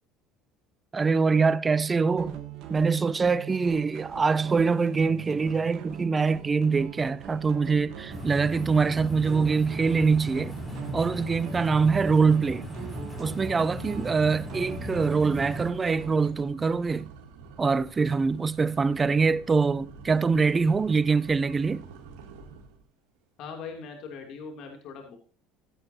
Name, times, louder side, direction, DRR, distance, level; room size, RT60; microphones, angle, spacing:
voice 1, 0.9-2.4 2.7-10.6 10.9-12.7 13.2-17.1 17.6-21.9, right 4 dB, 25° right, 0.6 m, -24 dB
sound 1, 2.2-16.3, right 8 dB, 60° right, 2.3 m, -42 dB
sound 2, 4.5-4.9 5.2-5.6 6.0-6.1 6.7-22.9, right 5 dB, 80° right, 2.8 m, -49 dB
sound 3, 8.1-15.7, left 1 dB, 10° left, 4.2 m, -38 dB
voice 2, 23.4-25.2, left 5 dB, 60° left, 2.9 m, -40 dB
15.5 x 8.6 x 2.8 m
supercardioid pair, 90°, 0 cm